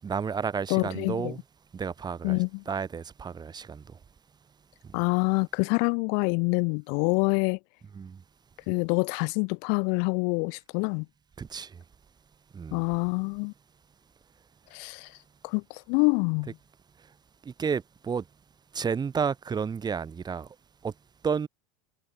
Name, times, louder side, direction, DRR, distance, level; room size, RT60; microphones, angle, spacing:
voice 1, 0.0-1.4 1.7-4.0 4.8-5.0 7.9-8.2 11.4-11.8 12.5-12.9 17.0-17.2 17.4-18.3 18.7-20.6 20.8-20.9 21.2-21.5, right 6 dB, 20° right, 7.0 m, -32 dB
voice 2, 0.7-1.3 2.2-2.5 4.9-7.6 8.7-11.1 12.7-13.5 14.7-15.2 15.4-16.5, left 38 dB, 60° left, 1.0 m, -26 dB
supercardioid pair, 115°, 18 cm